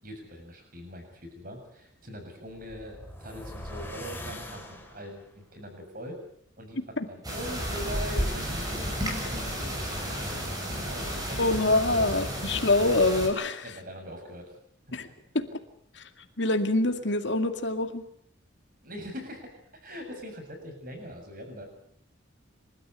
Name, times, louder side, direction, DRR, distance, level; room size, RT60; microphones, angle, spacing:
voice 1, 0.0-6.2 6.6-11.5 13.6-14.5 14.9-15.0 18.8-21.7, equal, 45° right, 4 dB, 7.2 m, -42 dB
sound 1, 2.5-5.3, left 1 dB, 10° left, 3.4 m, -42 dB
sound 2, 7.2-13.3, equal, 20° right, 6.9 m, -32 dB
voice 2, 11.4-13.6 14.9-15.1 15.3-15.5 16.4-18.0, left 2 dB, 60° left, 6 dB, 2.2 m, -25 dB
28.0 x 13.5 x 9.9 m, 0.69 s
head